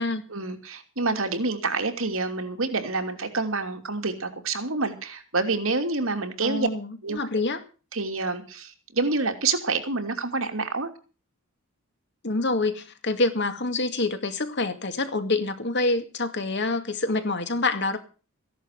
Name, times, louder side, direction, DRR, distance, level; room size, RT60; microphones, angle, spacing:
voice 1, 0.3-6.7 7.0-7.2 7.9-10.9, right 3 dB, 70° right, 2.9 m, -27 dB
voice 2, 6.4-7.6 12.2-18.0, left 2 dB, 55° left, 2.2 m, -26 dB
15.0 x 11.0 x 6.8 m
head